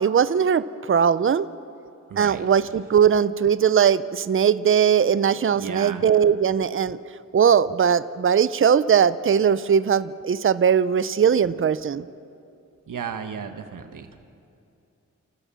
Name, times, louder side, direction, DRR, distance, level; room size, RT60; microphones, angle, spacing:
voice 1, 0.0-1.5 2.2-7.0 7.3-12.0, right 7 dB, 40° right, 15 dB, 0.6 m, -20 dB
voice 2, 2.1-2.5 5.5-6.0 12.9-14.1, right 7 dB, 80° right, 7 dB, 1.3 m, -34 dB
29.5 x 14.5 x 7.0 m, 2.6 s
cardioid pair, 70°, 31 cm